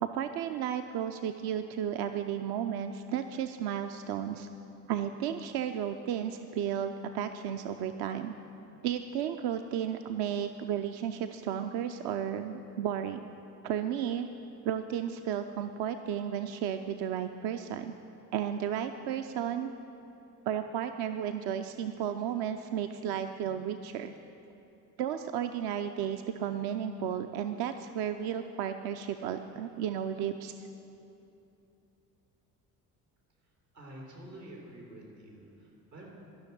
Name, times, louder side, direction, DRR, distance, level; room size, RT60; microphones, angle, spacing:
voice 1, 0.0-4.5 4.9-8.3 8.8-13.2 13.6-14.3 14.6-17.9 18.3-19.7 20.5-24.1 25.0-30.7, right 9 dB, 55° right, 7 dB, 0.6 m, -33 dB
voice 2, 33.7-36.1, right 1 dB, 90° right, -3 dB, 3.3 m, -48 dB
13.0 x 6.3 x 9.2 m, 2.8 s
figure-of-eight pair, 50°, 48 cm